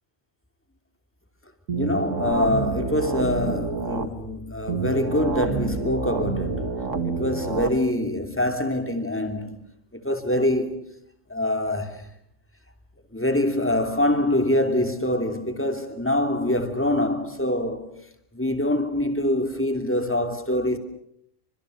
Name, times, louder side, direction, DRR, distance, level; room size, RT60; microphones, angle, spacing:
voice 1, 1.7-9.6 9.9-10.8 11.3-12.0 13.1-17.9 18.3-20.8, left 1 dB, 10° left, 2.9 m, -25 dB
sound 1, 1.7-4.1 4.7-7.7, right 4 dB, 90° right, 2.2 m, -28 dB
30.0 x 25.5 x 6.8 m
omnidirectional pair, 1.3 m